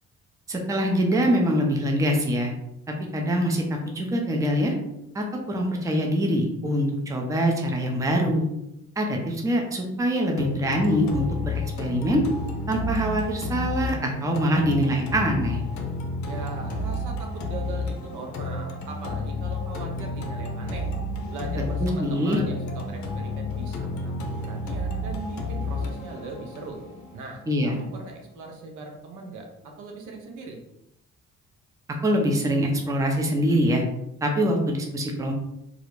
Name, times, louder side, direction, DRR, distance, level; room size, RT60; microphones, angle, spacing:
voice 1, 0.5-2.5 3.1-4.7 5.1-8.5 9.0-12.2 12.7-15.6 21.8-22.4 27.5-27.8 32.0-33.8 34.2-35.3, equal, 10° right, 1 dB, 0.5 m, -24 dB
sound 1, 10.4-28.4, left 2 dB, 70° left, 0.5 m, -31 dB
voice 2, 16.2-20.9 21.3-26.8 27.1-30.6, right 3 dB, 80° right, 2 dB, 0.7 m, -39 dB
2.4 x 2.0 x 3.0 m, 0.86 s
cardioid pair, 90°, 30 cm